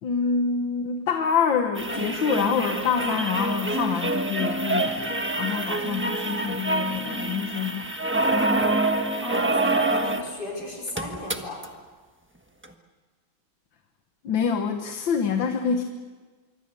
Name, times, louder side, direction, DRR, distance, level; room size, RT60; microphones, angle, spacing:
voice 1, 0.0-7.9 14.2-15.8, left 6 dB, 65° left, 6 dB, 1.9 m, -26 dB
sound 1, 1.8-10.3 10.6-10.7 10.9-11.7 12.6-12.7, right 2 dB, 5° right, 1.0 m, -26 dB
voice 2, 9.2-11.6, left 1 dB, 50° left, -1 dB, 5.6 m, -35 dB
26.0 x 24.0 x 6.9 m, 1.4 s
omnidirectional pair, 2.3 m